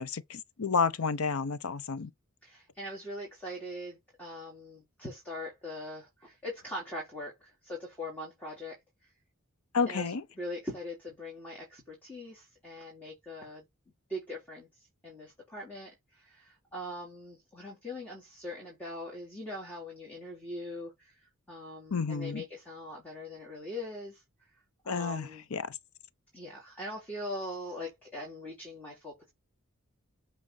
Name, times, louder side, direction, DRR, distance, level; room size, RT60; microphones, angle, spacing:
voice 1, 0.0-2.1 9.7-10.2 21.9-22.4 24.9-25.7, left 5 dB, 80° left, 0.7 m, -31 dB
voice 2, 2.4-9.1 9.9-13.7 14.1-24.2 24.8-25.5 26.3-29.3, left 1 dB, 5° left, 3.6 m, -42 dB
8.6 x 4.1 x 4.2 m
head